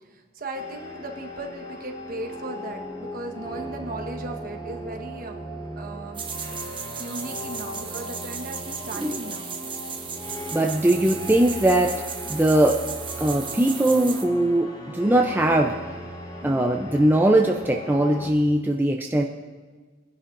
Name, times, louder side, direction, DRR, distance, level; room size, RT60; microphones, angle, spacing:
voice 1, 0.3-5.3 5.8-6.2 7.0-9.5 16.4-16.7, right 2 dB, 50° right, 3 dB, 1.3 m, -37 dB
sound 1, 0.5-18.3, equal, 20° left, 1.2 m, -38 dB
sound 2, 6.1-14.2, right 6 dB, 25° right, 1.0 m, -36 dB
voice 2, 8.9-9.3 10.5-12.0 12.3-12.8 13.2-15.8 16.4-19.2, right 1 dB, 10° right, 2 dB, 0.5 m, -20 dB
21.5 x 11.0 x 2.6 m, 1.5 s
head